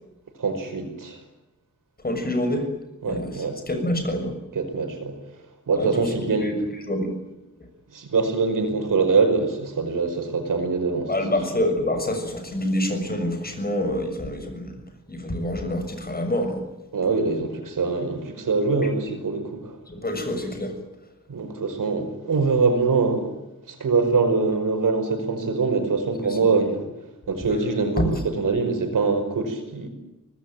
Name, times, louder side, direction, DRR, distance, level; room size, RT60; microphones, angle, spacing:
voice 1, 0.4-1.2 3.0-3.6 4.6-5.2 5.7-6.5 7.9-11.1 16.9-19.8 21.3-23.3 23.7-26.9 27.3-29.9, right 4 dB, 90° right, 7 dB, 5.3 m, -23 dB
voice 2, 2.0-2.7 3.1-4.3 5.7-6.1 6.4-7.1 11.1-14.8 15.1-16.6 19.9-20.7 28.0-28.1, left 1 dB, 30° left, 6 dB, 6.6 m, -26 dB
25.0 x 20.0 x 9.2 m, 1.0 s
wide cardioid pair, 135°, 31 cm